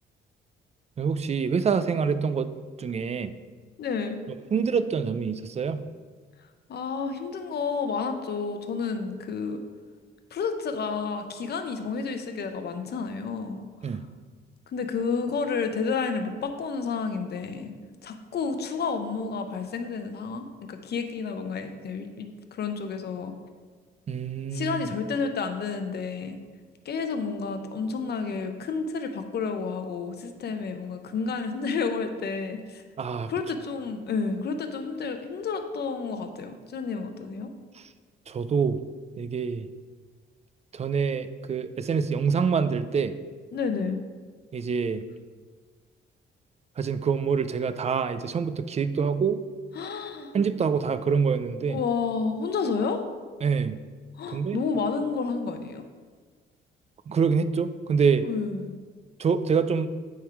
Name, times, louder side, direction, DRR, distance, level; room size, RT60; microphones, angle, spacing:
voice 1, 1.0-2.5 2.8-3.3 4.5-5.9 13.8-14.0 24.1-24.8 33.0-33.3 38.3-38.8 39.2-39.7 40.7-43.1 44.5-45.0 46.8-49.4 50.3-51.8 53.4-53.8 54.3-54.6 57.1-58.3 59.2-59.9, right 6 dB, 35° right, 12 dB, 0.4 m, -26 dB
voice 2, 3.8-4.2 6.7-9.6 10.3-14.0 14.7-17.7 18.0-23.3 24.5-26.4 26.8-32.8 33.3-37.5 43.5-44.0 49.7-50.3 51.7-53.1 54.2-55.8 58.2-58.7, left 5 dB, 55° left, 7 dB, 0.8 m, -30 dB
8.9 x 3.7 x 4.7 m, 1.5 s
cardioid pair, 90°, 20 cm